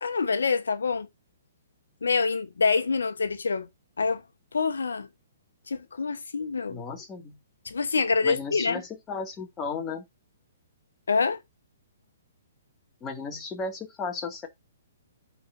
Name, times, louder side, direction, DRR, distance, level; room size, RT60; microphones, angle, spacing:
voice 1, 0.0-1.1 2.0-3.7 4.0-4.2 4.5-5.1 5.7-6.8 7.6-8.8 11.1-11.4, left 4 dB, 80° left, 1.0 m, -26 dB
voice 2, 6.7-7.4 8.2-10.0 13.0-14.5, left 4 dB, 20° left, 2.0 m, -35 dB
11.5 x 4.2 x 2.6 m
hypercardioid pair, 130°, 0 cm